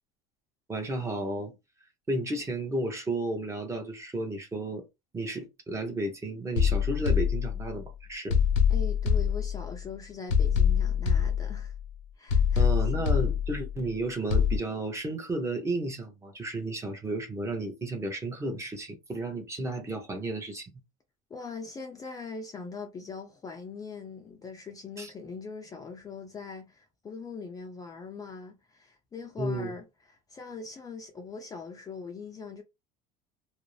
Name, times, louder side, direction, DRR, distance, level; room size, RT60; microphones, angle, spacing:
voice 1, 0.7-1.6 2.1-4.8 5.1-8.4 12.6-20.7 25.0-25.1 29.4-29.7, right 2 dB, 15° right, 0.7 m, -33 dB
sound 1, 6.6-7.8 8.3-9.9 10.3-11.9 12.3-13.9 14.3-14.6, left 7 dB, 75° left, 0.7 m, -25 dB
voice 2, 8.7-11.7 12.2-12.7 13.0-13.1 21.3-32.6, left 4 dB, 20° left, 0.4 m, -41 dB
2.5 x 2.0 x 3.1 m
cardioid pair, 130°, 18 cm